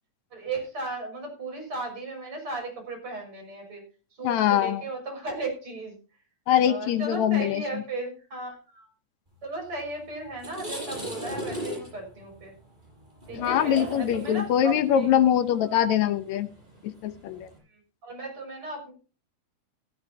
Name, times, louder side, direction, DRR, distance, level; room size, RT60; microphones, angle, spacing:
voice 1, 0.3-3.8 4.2-6.0 6.6-8.9 9.4-12.5 13.3-15.1 15.7-15.8 17.7-18.9, right 3 dB, 45° right, 3 dB, 6.9 m, -36 dB
voice 2, 4.2-4.8 6.5-7.6 13.3-16.5 16.8-17.5, left 10 dB, 75° left, 11 dB, 2.2 m, -23 dB
sound 1, 9.8-9.9 10.3-17.6, equal, 15° right, 7.2 m, -38 dB
15.5 x 15.0 x 2.8 m, 0.36 s
omnidirectional pair, 3.4 m